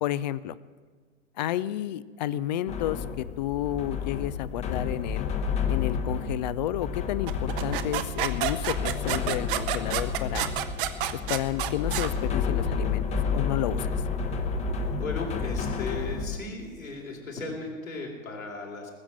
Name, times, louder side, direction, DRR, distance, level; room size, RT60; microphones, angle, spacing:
voice 1, 0.0-0.6 1.4-5.3 5.7-10.5 11.1-13.1 13.3-13.9, left 13 dB, 35° left, 18 dB, 0.4 m, -31 dB
sound 1, 2.7-16.4, left 5 dB, 15° left, 0.9 m, -30 dB
sound 2, 7.3-12.1, right 12 dB, 40° right, 0.8 m, -30 dB
voice 2, 14.9-18.9, left 3 dB, 75° left, -1 dB, 3.7 m, -36 dB
19.5 x 7.2 x 7.5 m, 1.5 s
figure-of-eight pair, 105°, 41 cm